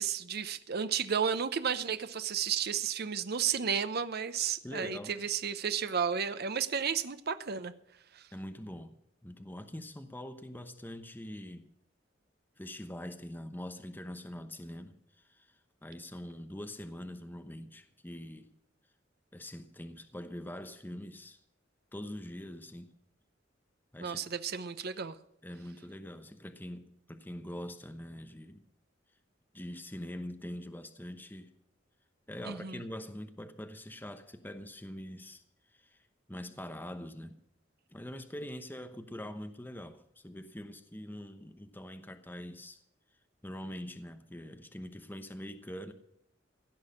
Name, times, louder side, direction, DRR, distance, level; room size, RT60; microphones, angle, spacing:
voice 1, 0.0-7.7 8.1-8.2 24.0-25.2 32.5-32.8, right 7 dB, 55° right, 11 dB, 0.8 m, -32 dB
voice 2, 4.6-5.2 8.3-11.6 12.6-18.5 19.3-21.4 21.9-22.9 23.9-24.3 25.4-28.6 29.5-31.5 32.3-35.4 35.7-36.0 36.3-37.4 37.9-42.8 43.4-45.9, left 1 dB, 10° left, 7 dB, 0.9 m, -44 dB
16.5 x 6.3 x 9.8 m, 0.76 s
head